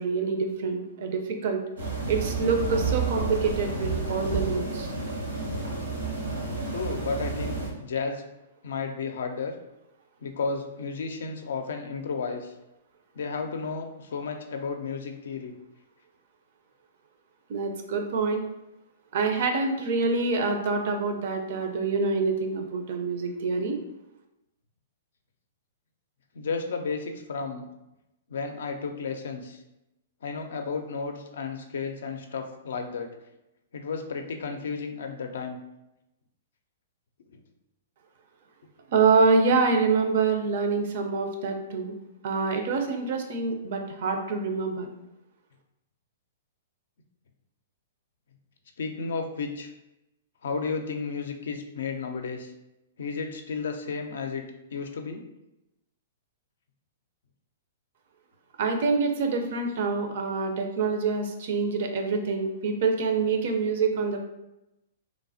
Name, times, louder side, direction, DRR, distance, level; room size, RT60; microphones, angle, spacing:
voice 1, 0.0-1.6 2.1-4.9 17.5-18.4 19.1-23.8 38.9-41.9 42.2-44.9 58.6-64.2, right 4 dB, 60° right, 5 dB, 0.4 m, -26 dB
sound 1, 1.8-7.7, right 4 dB, 85° right, 0.9 m, -30 dB
voice 2, 6.7-8.2 8.6-9.5 10.2-12.5 13.1-15.5 26.3-27.7 28.3-29.6 30.2-33.1 33.7-35.6 37.3-37.4 48.8-49.7 50.4-52.5 53.0-55.2, left 4 dB, 70° left, 5 dB, 0.4 m, -33 dB
3.1 x 2.0 x 2.6 m, 0.92 s
hypercardioid pair, 120°, 0 cm